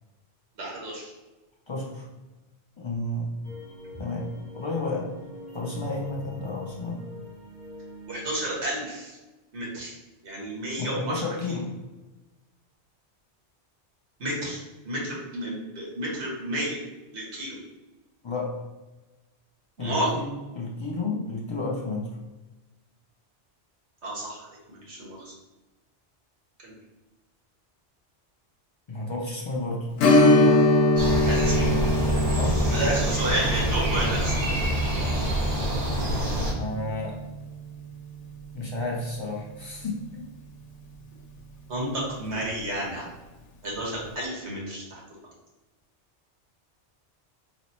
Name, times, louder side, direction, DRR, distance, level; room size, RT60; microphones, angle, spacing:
voice 1, 0.6-1.1 3.9-4.0 8.1-9.2 9.5-9.9 10.2-11.2 14.2-14.6 14.8-16.8 17.1-17.6 19.8-20.2 24.0-25.3 26.6-26.7 31.2-31.7 32.7-34.3 41.7-43.1 43.6-45.0, right 1 dB, 75° right, -4 dB, 1.4 m, -31 dB
voice 2, 1.7-2.1 2.8-3.3 4.0-4.3 4.5-5.1 5.5-7.0 10.8-11.7 18.2-18.5 19.8-20.3 20.5-22.2 28.9-29.9 30.2-30.6 32.3-32.6 36.6-37.2 38.5-40.3, left 2 dB, 45° left, -3 dB, 0.3 m, -31 dB
sound 1, 3.4-8.7, left 2 dB, 40° right, 0.8 m, -43 dB
Strum, 30.0-39.2 39.5-39.6 42.2-42.3 42.8-42.9, left 1 dB, 85° left, 0.9 m, -24 dB
sound 2, 31.0-36.5, equal, 90° right, 1.4 m, -26 dB
3.4 x 2.0 x 4.2 m, 1.1 s
omnidirectional pair, 1.2 m